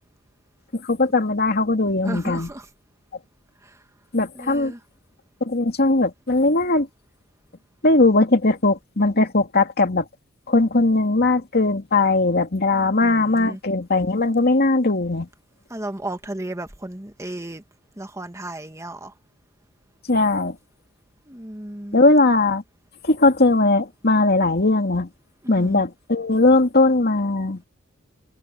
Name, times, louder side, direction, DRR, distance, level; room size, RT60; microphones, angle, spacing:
voice 1, 0.7-2.5 4.1-4.7 5.4-6.9 7.8-10.0 10.5-15.3 20.1-20.6 21.9-22.6 23.0-25.1 25.5-27.7, left 2 dB, 55° left, 2.5 m, -19 dB
voice 2, 2.0-2.7 3.6-3.8 4.3-4.8 12.7-13.6 15.7-17.6 18.0-19.1 21.3-22.0 25.4-25.8, right 1 dB, 15° right, 1.6 m, -34 dB
head